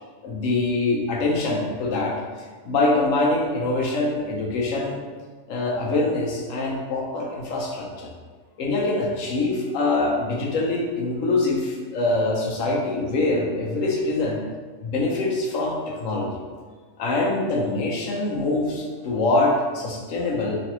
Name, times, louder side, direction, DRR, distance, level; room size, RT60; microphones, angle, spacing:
voice 1, 0.2-2.2 2.6-5.0 5.5-8.1 8.6-14.4 14.8-16.4 17.0-20.6, left 2 dB, 65° left, -2 dB, 1.1 m, -24 dB
4.1 x 3.1 x 3.0 m, 1.5 s
omnidirectional pair, 1.5 m